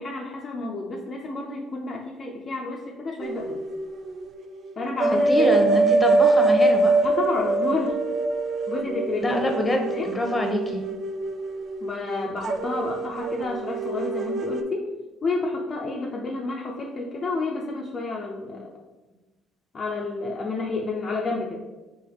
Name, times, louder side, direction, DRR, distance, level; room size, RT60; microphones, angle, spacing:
voice 1, 0.0-3.6 4.8-5.8 7.0-8.0 8.7-10.1 11.8-14.9 15.2-18.7 19.7-21.7, left 3 dB, 40° left, -2 dB, 0.6 m, -30 dB
sound 1, 3.2-4.3 4.6-14.6, right 3 dB, 55° right, 0.4 m, -24 dB
voice 2, 5.2-7.0 9.2-10.8, left 1 dB, 20° left, 2 dB, 1.0 m, -25 dB
3.7 x 3.3 x 3.9 m, 1.2 s
supercardioid pair, 70°, 0 cm